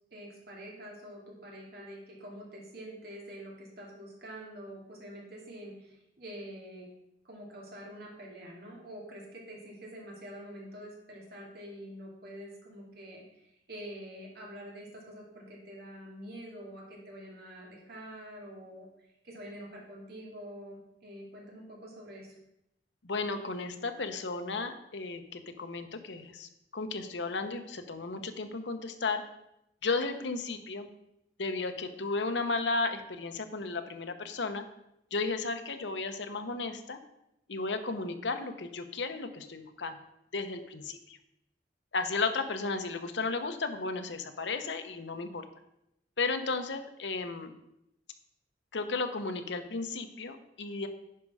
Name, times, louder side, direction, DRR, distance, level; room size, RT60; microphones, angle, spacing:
voice 1, 0.1-6.9 7.2-18.9 19.2-22.4, equal, 60° right, -2 dB, 2.5 m, -46 dB
voice 2, 23.0-29.2 29.8-30.9 31.4-34.6 35.1-37.0 37.5-40.0 40.3-41.2 41.9-45.4 46.2-47.5 48.7-50.9, left 3 dB, 90° left, 7 dB, 0.9 m, -34 dB
10.0 x 5.3 x 4.9 m, 0.82 s
head